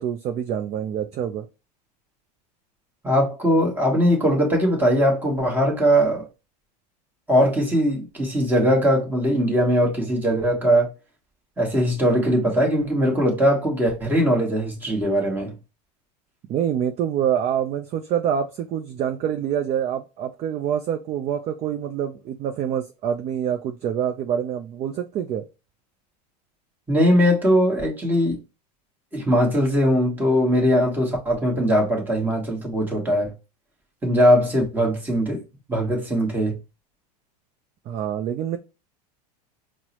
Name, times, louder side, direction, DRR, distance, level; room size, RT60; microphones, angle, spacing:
voice 1, 0.0-1.5 16.5-25.5 37.9-38.6, right 9 dB, 30° right, 0.4 m, -26 dB
voice 2, 3.0-6.2 7.3-10.9 11.6-15.5 26.9-28.4 29.1-33.3 34.0-35.4 35.7-36.6, equal, 10° right, 1.1 m, -20 dB
4.5 x 2.1 x 2.8 m
supercardioid pair, 125°, 21 cm